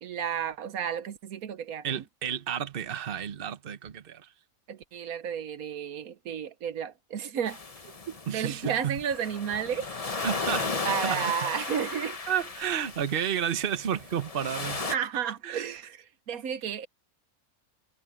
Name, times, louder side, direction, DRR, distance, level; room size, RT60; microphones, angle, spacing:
voice 1, 0.0-2.0 4.7-7.9 8.3-9.9 10.8-12.2 14.7-16.9, right 8 dB, 90° right, 1.4 m, -32 dB
voice 2, 1.8-4.3 8.3-9.0 10.2-11.5 12.3-14.9 15.4-15.7, right 9 dB, 45° right, 1.1 m, -31 dB
sound 1, 7.5-15.0, left 4 dB, 30° left, 1.1 m, -35 dB
omnidirectional pair, 1.5 m